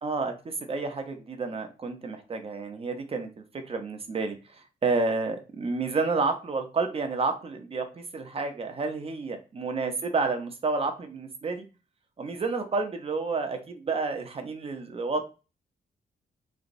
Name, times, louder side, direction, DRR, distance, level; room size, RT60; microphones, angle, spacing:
voice 1, 0.0-3.3 3.7-11.6 12.2-15.3, right 3 dB, 35° right, 5 dB, 0.7 m, -30 dB
3.4 x 3.0 x 2.6 m, 0.31 s
wide cardioid pair, 125°, 16 cm